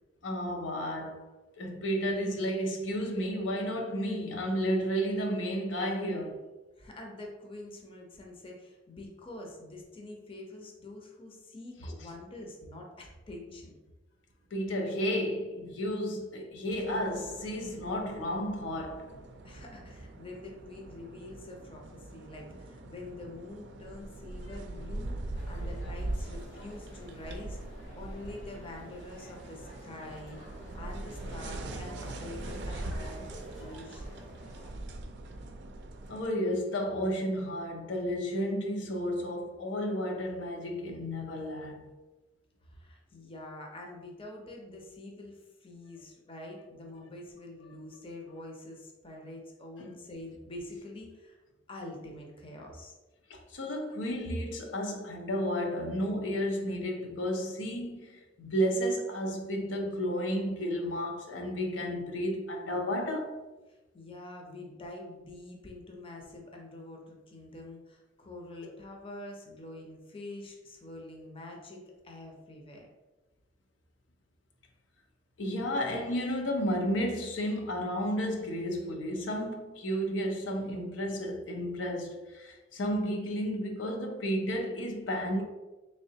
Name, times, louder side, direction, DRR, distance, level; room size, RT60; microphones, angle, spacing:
voice 1, 0.2-1.2 1.5-6.4 14.5-19.1 36.1-41.9 49.8-50.0 53.3-63.4 75.4-85.4, equal, 90° left, 0.6 m, -32 dB
voice 2, 6.8-13.8 19.4-30.4 30.7-34.1 42.6-51.4 51.7-52.9 63.7-72.9, left 2 dB, 30° left, 0.6 m, -46 dB
sound 1, 16.7-36.3, right 2 dB, 65° right, 0.4 m, -42 dB
sound 2, 25.3-34.7, equal, 75° left, 1.1 m, -50 dB
3.7 x 3.2 x 2.7 m
head